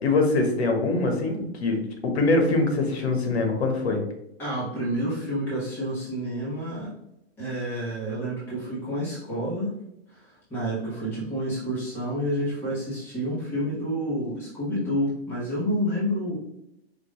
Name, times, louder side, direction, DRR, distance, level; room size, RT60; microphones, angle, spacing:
voice 1, 0.0-4.0, left 2 dB, 85° left, 3 dB, 1.3 m, -23 dB
voice 2, 4.4-6.9 7.4-9.7 10.1-16.4, equal, 5° left, -9 dB, 1.2 m, -29 dB
5.1 x 2.7 x 3.1 m, 0.83 s
hypercardioid pair, 175°, 32 cm